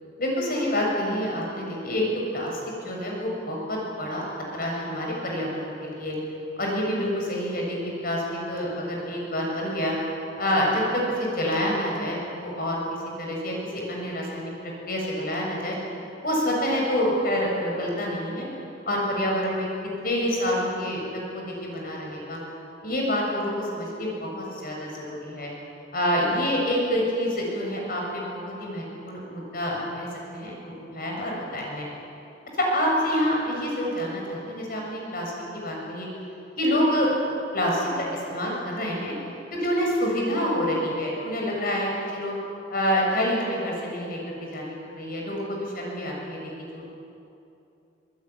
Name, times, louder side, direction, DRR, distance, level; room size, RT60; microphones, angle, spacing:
voice 1, 0.2-2.0 2.3-4.2 4.5-6.2 6.6-9.9 10.4-12.8 13.2-15.8 16.2-18.5 18.9-19.7 20.0-22.4 22.8-25.5 25.9-31.9 32.6-36.1 36.6-37.1 37.5-39.1 39.5-42.3 42.7-46.4 46.7-46.9, equal, 50° left, -1 dB, 7.3 m, -27 dB
24.0 x 21.0 x 10.0 m, 2.8 s
head